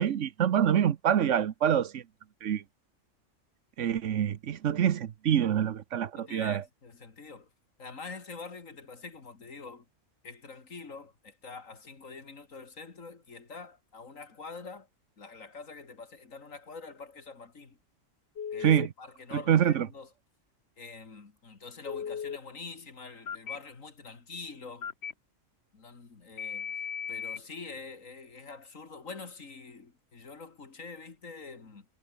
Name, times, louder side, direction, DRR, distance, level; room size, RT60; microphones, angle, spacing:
voice 1, 0.0-2.0 2.4-2.6 3.8-6.6 18.6-18.9 19.5-19.9, right 9 dB, 65° right, 1.2 m, -26 dB
voice 2, 6.1-7.5 7.8-9.9 10.2-14.9 15.2-17.8 18.5-20.1 20.8-24.9 25.7-31.9, left 4 dB, 75° left, 2.9 m, -45 dB
Telephone, 18.4-18.9 21.9-22.4 23.3-23.6 24.8-25.1 26.4-27.4, left 7 dB, 55° left, 1.3 m, -36 dB
omnidirectional pair, 1.4 m